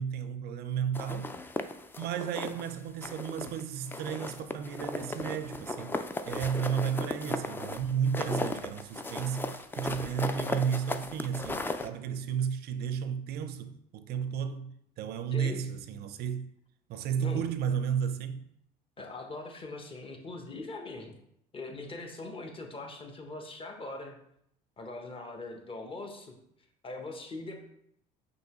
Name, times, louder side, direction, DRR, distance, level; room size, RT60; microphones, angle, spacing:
voice 1, 0.0-1.4 2.0-6.0 6.3-16.5 16.9-18.4, right 7 dB, 55° right, 0.4 m, -33 dB
sound 1, 0.9-2.7 3.0-3.6 3.9-11.9, left 2 dB, 10° left, 0.3 m, -36 dB
voice 2, 15.3-15.7 17.2-17.4 19.0-21.1 21.5-24.2 24.8-26.4 26.8-27.6, left 2 dB, 30° left, 0.9 m, -41 dB
5.3 x 2.9 x 2.9 m
supercardioid pair, 75°, 20 cm